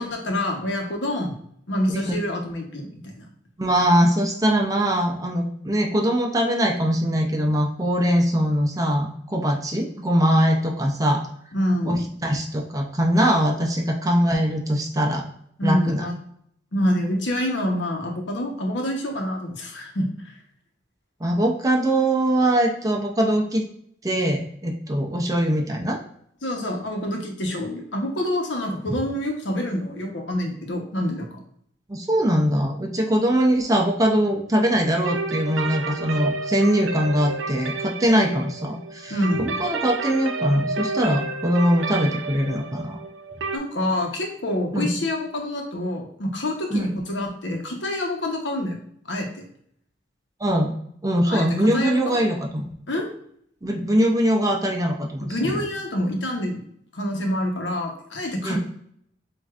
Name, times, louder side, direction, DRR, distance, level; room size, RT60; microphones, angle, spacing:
voice 1, 0.0-1.3 1.7-3.3 11.5-12.0 15.6-16.1 16.7-20.1 26.4-31.4 39.1-39.5 43.5-48.8 49.1-49.4 51.3-51.5 51.7-52.2 52.9-53.1 55.2-56.6 56.9-58.6, left 1 dB, 75° left, 2 dB, 1.0 m, -27 dB
voice 2, 3.6-11.2 11.8-15.2 15.6-16.1 21.2-23.6 24.0-26.0 31.9-43.0 44.7-44.9 46.7-46.9 50.4-50.7 51.0-52.7 53.6-55.5 58.4-58.6, equal, 20° right, 1 dB, 0.6 m, -22 dB
sound 1, 35.0-43.6, right 3 dB, 85° right, 0.5 m, -30 dB
7.5 x 2.6 x 2.4 m, 0.66 s
head